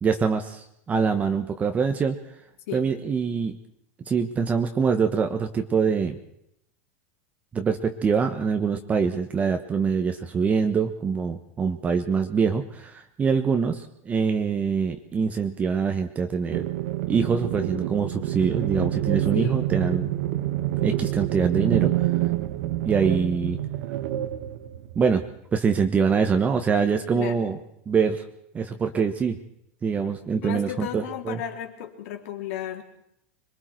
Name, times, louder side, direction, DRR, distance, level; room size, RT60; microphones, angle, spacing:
voice 1, 0.0-2.2 2.7-3.6 4.1-6.2 7.5-16.6 17.1-20.1 20.8-21.9 22.8-23.6 24.9-25.2 25.5-27.6 27.9-28.2 28.5-29.4 29.8-31.4, right 6 dB, 20° right, 6 dB, 1.2 m, -24 dB
sound 1, 16.5-25.2, right 14 dB, 65° right, 1.5 m, -27 dB
voice 2, 19.3-19.7 27.1-27.5 30.0-30.1 30.4-32.8, left 10 dB, 70° left, 3 dB, 3.7 m, -34 dB
26.5 x 22.5 x 4.6 m, 0.78 s
supercardioid pair, 150°, 8 cm